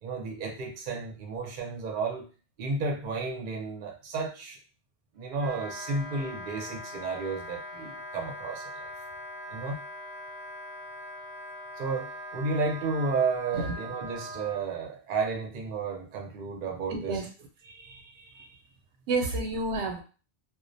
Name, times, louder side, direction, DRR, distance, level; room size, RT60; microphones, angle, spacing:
voice 1, 0.0-2.3 2.6-4.6 5.1-8.9 9.5-9.8 11.8-17.2 17.7-18.5, right 4 dB, 55° right, 1 dB, 0.7 m, -32 dB
Wind instrument woodwind instrument, 5.3-14.6, equal, 10° right, 0.6 m, -41 dB
voice 2, 16.9-17.3 19.1-20.0, right 2 dB, 85° right, 4 dB, 0.9 m, -29 dB
2.4 x 2.1 x 2.5 m, 0.36 s
omnidirectional pair, 1.1 m